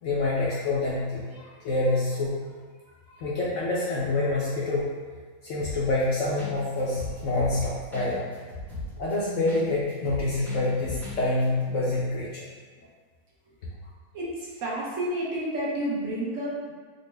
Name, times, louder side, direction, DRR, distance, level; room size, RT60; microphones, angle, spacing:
voice 1, 0.0-2.4 3.2-4.9 5.4-8.3 9.0-12.4, left 2 dB, 65° left, -6 dB, 0.8 m, -27 dB
sound 1, 5.6-6.0 6.4-6.5 6.8-9.6 9.9-11.2 11.4-11.5, left 2 dB, ahead, 0.6 m, -37 dB
voice 2, 14.1-16.7, right 1 dB, 60° right, -7 dB, 1.0 m, -30 dB
3.9 x 2.1 x 3.2 m, 1.5 s
omnidirectional pair, 1.7 m